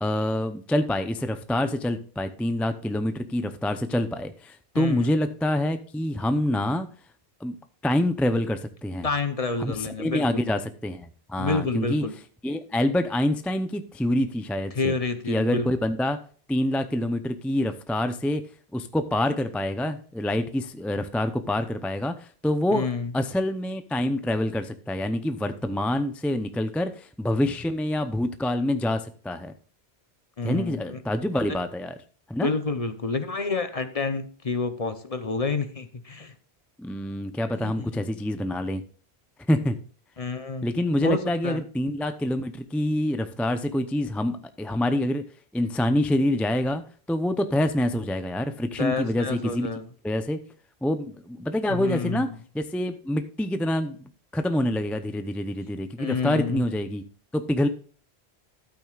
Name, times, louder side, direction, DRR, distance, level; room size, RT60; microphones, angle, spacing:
voice 1, 0.0-6.9 7.4-7.5 7.8-9.1 9.6-12.0 12.4-14.9 15.3-16.2 16.5-18.4 18.7-29.5 30.4-32.0 32.3-32.5 36.8-38.8 39.5-39.8 40.6-45.2 45.5-46.8 47.1-49.7 50.0-50.4 50.8-52.3 52.5-57.0 57.3-57.7, left 1 dB, ahead, 9 dB, 0.5 m, -26 dB
voice 2, 4.7-5.2 9.0-10.4 11.4-12.1 14.7-15.7 22.7-23.1 30.4-31.0 32.4-36.3 37.5-38.0 40.2-40.7 41.0-41.6 48.8-49.8 51.7-52.3 56.0-56.7, left 4 dB, 35° left, 10 dB, 0.8 m, -29 dB
12.5 x 8.6 x 2.4 m, 0.42 s
omnidirectional pair, 1.1 m